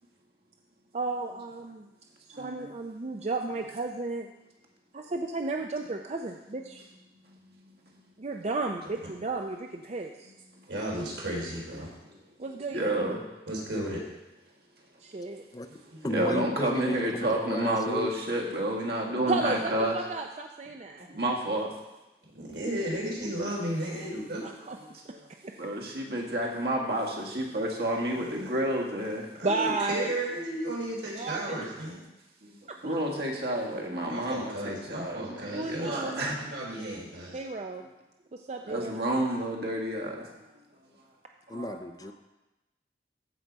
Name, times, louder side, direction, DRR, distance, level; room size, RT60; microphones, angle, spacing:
voice 1, 0.9-1.9 2.4-4.3 4.9-6.8 8.2-10.3 12.4-12.8 15.0-15.4 19.3-21.1 24.4-24.8 25.4-25.5 29.4-30.1 31.1-31.6 32.7-32.9 35.5-36.2 37.3-37.9 38.3-39.0, right 3 dB, 35° right, 3 dB, 0.5 m, -33 dB
voice 2, 2.3-2.7 12.7-13.2 16.1-19.9 21.0-21.7 24.0-24.1 25.1-25.2 25.6-29.3 32.4-32.5 32.8-36.4 38.7-40.2 41.5-41.8, right 1 dB, 60° right, -1 dB, 1.8 m, -30 dB
voice 3, 10.7-11.9 13.5-14.0 15.7-16.1 22.3-24.4 28.2-28.5 29.4-32.0 34.1-37.4, right 1 dB, 85° right, -3 dB, 3.7 m, -34 dB
voice 4, 16.0-18.1 41.5-42.1, left 1 dB, 20° left, 8 dB, 0.4 m, -33 dB
14.5 x 5.4 x 4.6 m, 1.0 s
head